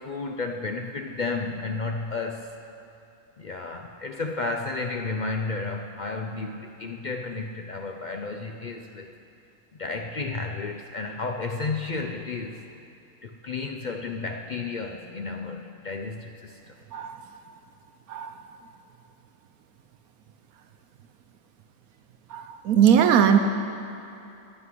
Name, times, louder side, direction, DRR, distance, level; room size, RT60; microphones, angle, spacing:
voice 1, 0.0-2.6 3.4-9.1 9.8-12.6 13.2-16.8, left 3 dB, 65° left, 4 dB, 0.4 m, -32 dB
voice 2, 22.3-23.4, right 8 dB, 85° right, 7 dB, 1.1 m, -20 dB
11.0 x 7.4 x 9.8 m, 2.8 s
omnidirectional pair, 1.5 m